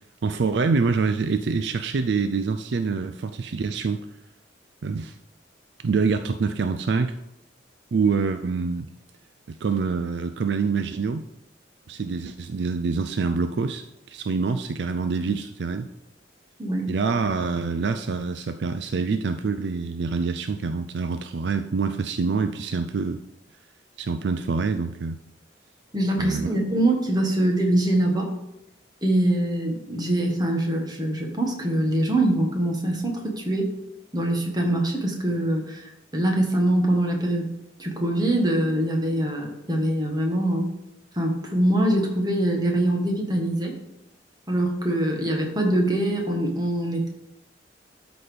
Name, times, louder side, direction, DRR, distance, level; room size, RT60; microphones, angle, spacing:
voice 1, 0.2-4.0 4.8-5.1 5.8-7.2 7.9-8.9 9.5-11.3 11.9-15.9 16.9-23.2 24.0-25.2 26.2-26.5, right 4 dB, 65° right, 9 dB, 0.4 m, -26 dB
voice 2, 16.6-16.9 25.9-28.3 29.0-33.7 34.1-37.4 37.8-40.7 41.1-43.8 44.5-47.1, right 1 dB, 20° right, 1 dB, 1.5 m, -23 dB
12.0 x 4.2 x 5.1 m, 0.85 s
head